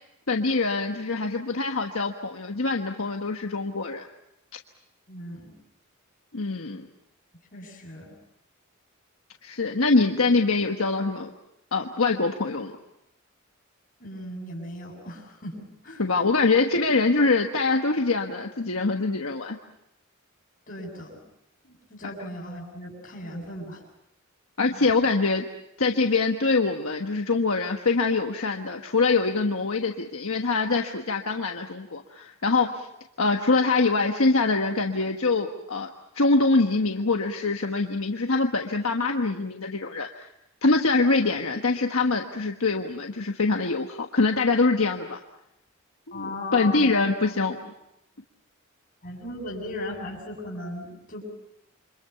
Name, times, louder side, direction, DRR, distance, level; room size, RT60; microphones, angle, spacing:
voice 1, 0.3-4.1 6.3-6.9 9.4-11.3 11.7-12.7 16.0-19.6 24.6-25.4 25.8-32.9 33.2-35.9 36.1-40.3 40.6-45.2 46.1-47.7, left 3 dB, 75° left, 3 dB, 1.4 m, -24 dB
voice 2, 5.1-5.5 7.5-8.1 14.0-16.0 20.7-21.2 21.6-23.8 24.6-24.9 46.1-47.3 49.0-51.2, left 1 dB, 40° left, 0 dB, 7.9 m, -37 dB
29.0 x 25.5 x 5.8 m, 0.82 s
head